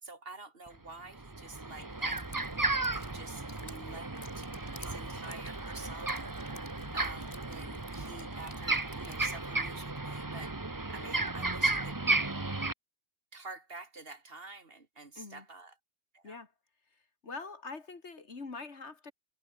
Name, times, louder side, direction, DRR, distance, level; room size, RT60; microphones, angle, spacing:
voice 1, 0.0-4.5 4.8-6.4 6.9-10.6 10.9-12.0 13.3-15.8 16.1-16.4, right 3 dB, 45° right, 2.3 m, -48 dB
sound 1, 0.7-0.8 1.1-12.7, right 2 dB, 15° right, 1.0 m, -34 dB
sound 2, 2.0-9.4, left 2 dB, 30° left, 3.4 m, -53 dB
voice 2, 17.2-19.1, left 4 dB, 55° left, 2.6 m, -44 dB
omnidirectional pair, 1.4 m